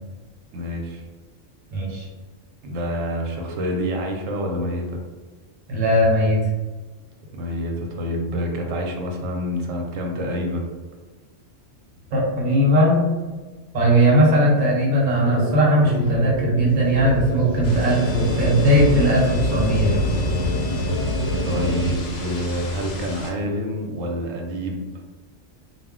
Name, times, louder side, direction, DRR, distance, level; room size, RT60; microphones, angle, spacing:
voice 1, 0.5-1.0 2.6-5.0 7.3-10.6 21.4-24.8, equal, 90° right, 1 dB, 1.0 m, -27 dB
voice 2, 1.7-2.1 5.7-6.4 12.1-13.1 13.7-20.0, equal, 45° right, -4 dB, 0.8 m, -18 dB
sound 1, 15.2-22.0, left 1 dB, 80° left, 1.0 m, -25 dB
sound 2, 17.6-23.3, left 1 dB, 55° left, 0.5 m, -33 dB
2.3 x 2.1 x 3.6 m, 1.3 s
omnidirectional pair, 1.3 m